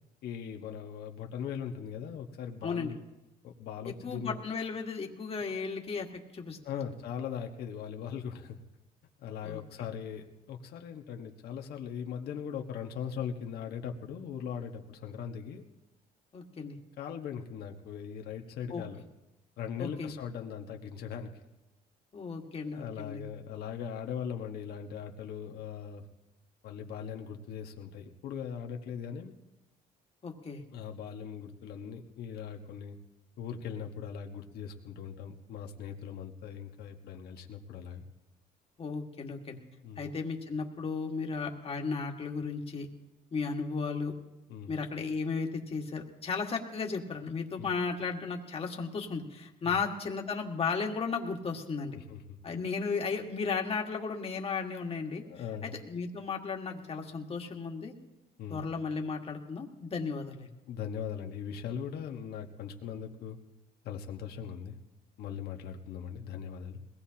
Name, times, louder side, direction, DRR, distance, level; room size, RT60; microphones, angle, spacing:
voice 1, 0.2-3.0 3.4-4.4 6.6-8.6 9.2-15.6 17.0-19.0 19.6-21.4 22.7-26.0 26.6-29.3 30.7-33.0 33.4-38.0 39.8-40.1 44.5-44.8 47.6-47.8 49.6-49.8 51.9-52.4 55.2-55.8 58.4-58.6 60.7-63.4 63.8-64.8 65.2-66.8, left 7 dB, 70° left, 3 dB, 1.4 m, -40 dB
voice 2, 2.6-2.9 3.9-6.1 6.3-6.8 9.4-9.6 16.3-16.8 18.7-18.8 19.8-20.1 22.1-23.2 30.2-30.6 38.8-39.6 40.0-42.9 43.3-44.1 44.7-52.0 52.4-55.2 55.6-57.9 58.5-60.5, left 5 dB, 35° left, 2 dB, 1.9 m, -35 dB
21.5 x 17.5 x 2.9 m, 1.0 s
cardioid pair, 110°, 17 cm